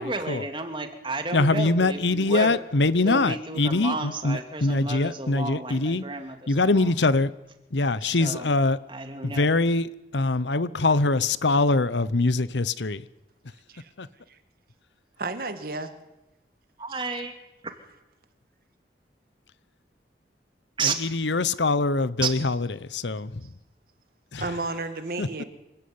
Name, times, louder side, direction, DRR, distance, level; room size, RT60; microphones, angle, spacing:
voice 1, 0.0-2.6 3.0-6.9 8.0-8.5 8.9-9.5 16.8-17.3 20.8-21.0 22.2-22.3, right 3 dB, 30° right, 2.7 m, -32 dB
voice 2, 1.3-6.0 6.5-7.3 7.7-8.8 9.2-13.0 14.0-14.1 20.8-23.3 24.3-24.4 25.2-25.4, left 3 dB, 80° left, 0.9 m, -23 dB
voice 3, 15.2-15.9 16.9-17.0 24.4-25.4, right 3 dB, 55° right, 2.0 m, -32 dB
26.0 x 15.5 x 9.7 m
head